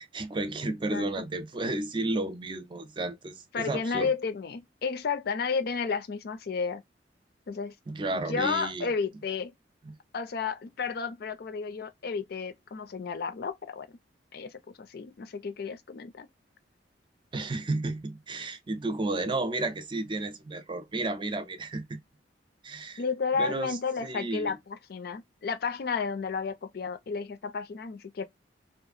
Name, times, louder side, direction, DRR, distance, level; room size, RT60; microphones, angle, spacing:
voice 1, 0.0-4.1 7.9-8.9 9.8-10.0 17.3-22.0 22.6-23.0 23.4-24.5, right 2 dB, 25° right, 0.4 m, -32 dB
voice 2, 0.6-1.1 3.5-6.8 7.5-7.7 8.1-9.5 10.1-13.9 14.3-16.3 23.0-28.2, left 5 dB, 60° left, 0.4 m, -32 dB
2.7 x 2.4 x 2.3 m
head